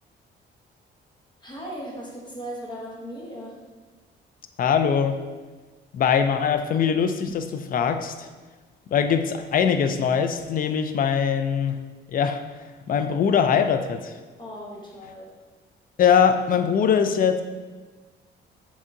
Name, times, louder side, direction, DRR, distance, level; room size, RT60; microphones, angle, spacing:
voice 1, 1.4-3.6 14.4-15.3, equal, 20° left, -3 dB, 1.0 m, -37 dB
voice 2, 4.6-5.2 5.9-8.3 8.9-11.8 12.1-12.4 12.9-14.1 16.0-17.4, left 7 dB, 45° left, 8 dB, 0.4 m, -22 dB
4.4 x 3.5 x 2.7 m, 1.3 s
cardioid pair, 90°, 20 cm